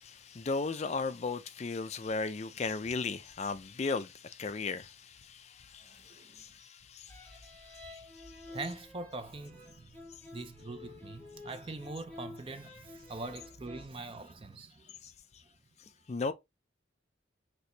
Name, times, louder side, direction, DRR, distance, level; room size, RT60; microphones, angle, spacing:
voice 1, 0.0-8.6 15.0-15.4 15.8-16.3, left 4 dB, 35° left, 0.3 m, -37 dB
voice 2, 5.8-6.4 8.5-14.9, right 3 dB, 30° right, 0.5 m, -43 dB
sound 1, 7.1-13.8, left 2 dB, 10° left, 1.7 m, -50 dB
6.0 x 2.9 x 2.7 m
head